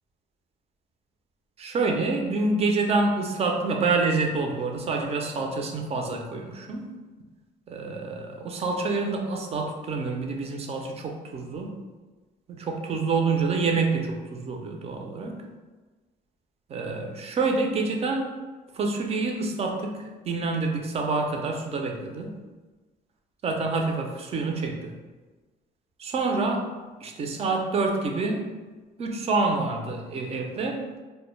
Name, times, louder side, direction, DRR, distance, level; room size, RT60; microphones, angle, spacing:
voice 1, 1.6-6.9 7.7-11.8 12.5-15.4 16.7-18.3 18.7-22.4 23.4-24.9 26.0-26.7 27.0-28.5 29.0-30.8, right 3 dB, 35° right, 2 dB, 0.4 m, -27 dB
2.1 x 2.1 x 3.0 m, 1.3 s
cardioid pair, 110°, 17 cm